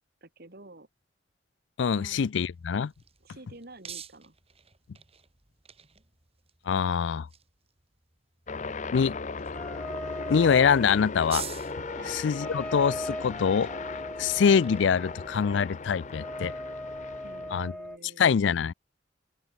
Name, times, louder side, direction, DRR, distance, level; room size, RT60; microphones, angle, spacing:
voice 1, 0.2-0.9 1.9-2.2 3.2-4.4 12.0-12.1 17.2-18.5, right 2 dB, 55° right, 2.3 m, -49 dB
voice 2, 1.8-2.9 6.7-7.3 8.9-9.2 10.3-11.4 12.1-13.7 14.2-16.5 17.5-17.7 18.2-18.7, left 6 dB, 75° left, 0.4 m, -24 dB
sound 1, 2.5-17.0, right 9 dB, 30° right, 3.3 m, -49 dB
sound 2, 8.5-17.6, left 4 dB, 40° left, 0.7 m, -38 dB
sound 3, 9.5-18.0, left 1 dB, 5° left, 0.5 m, -40 dB
open air
head